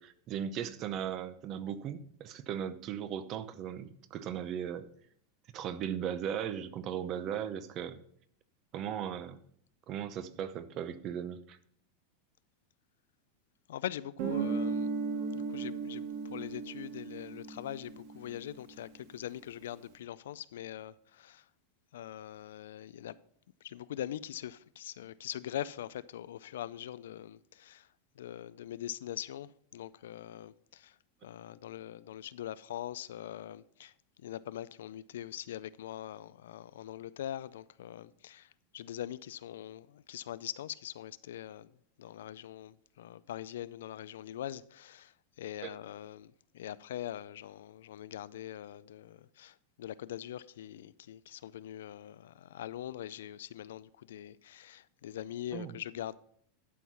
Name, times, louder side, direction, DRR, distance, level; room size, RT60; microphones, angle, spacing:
voice 1, 0.0-4.9 5.5-8.0 8.7-9.4 9.9-11.6 45.6-45.7 55.5-55.7, right 9 dB, 40° right, 0.7 m, -37 dB
voice 2, 13.7-14.9 15.3-21.4 21.9-23.2 23.6-27.9 28.2-30.9 31.2-33.9 34.2-41.7 42.0-56.2, left 11 dB, 85° left, 0.4 m, -42 dB
Guitar, 14.2-18.8, right 5 dB, 55° right, 1.4 m, -36 dB
11.5 x 4.7 x 5.5 m
supercardioid pair, 140°, 0 cm